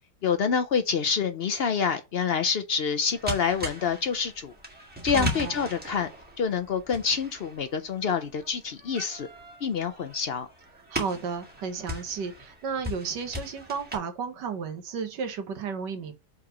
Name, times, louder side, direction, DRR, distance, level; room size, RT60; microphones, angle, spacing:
voice 1, 0.2-4.5 5.0-6.1 6.4-9.3 9.6-10.5, left 6 dB, 85° left, 0.5 m, -27 dB
sound 1, 3.1-14.0, left 1 dB, 5° right, 1.8 m, -38 dB
voice 2, 5.1-5.6 10.9-16.1, right 6 dB, 75° right, 1.7 m, -33 dB
5.6 x 3.9 x 5.6 m
omnidirectional pair, 1.9 m